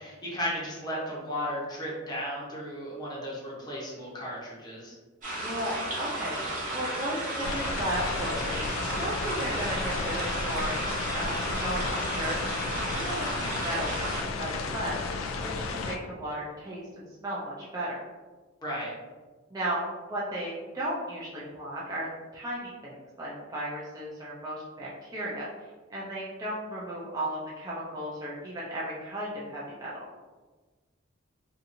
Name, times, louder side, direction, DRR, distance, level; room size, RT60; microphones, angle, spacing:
voice 1, 0.0-4.9 18.6-18.9, equal, 20° left, -5 dB, 0.8 m, -35 dB
sound 1, 5.2-14.2, right 1 dB, 40° right, 0.8 m, -34 dB
voice 2, 5.4-8.6 9.0-12.4 12.8-15.0 15.4-18.0 19.5-19.8 20.1-25.5 25.9-30.1, right 1 dB, 20° right, -7 dB, 0.4 m, -35 dB
sound 2, 7.4-16.0, left 3 dB, 75° left, 0.3 m, -33 dB
2.8 x 2.5 x 2.5 m, 1.3 s
head